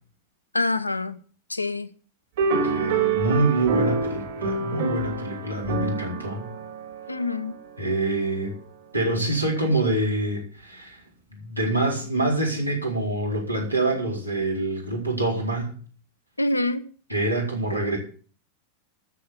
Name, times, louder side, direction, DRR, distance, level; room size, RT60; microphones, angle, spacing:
voice 1, 0.5-1.2 1.5-1.9 7.1-7.5 16.4-16.8, left 2 dB, 85° left, 1.0 m, -25 dB
sound 1, 2.4-7.9, right 4 dB, 55° right, 3.6 m, -27 dB
voice 2, 2.6-6.5 7.8-8.5 8.9-11.0 11.4-15.8 17.1-18.0, right 2 dB, 90° right, 4.3 m, -25 dB
13.0 x 7.6 x 7.2 m
figure-of-eight pair, 90°, 0 cm